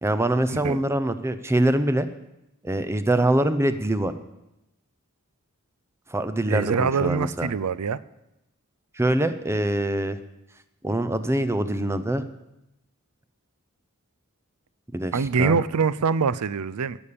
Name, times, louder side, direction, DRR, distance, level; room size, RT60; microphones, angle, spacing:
voice 1, 0.0-2.1 2.6-4.1 6.1-7.5 9.0-10.2 10.8-12.2 14.9-15.6, right 1 dB, 10° right, 11 dB, 0.6 m, -24 dB
voice 2, 6.5-8.0 15.1-17.0, right 5 dB, 85° right, 18 dB, 0.5 m, -24 dB
16.5 x 7.2 x 6.9 m, 0.91 s
head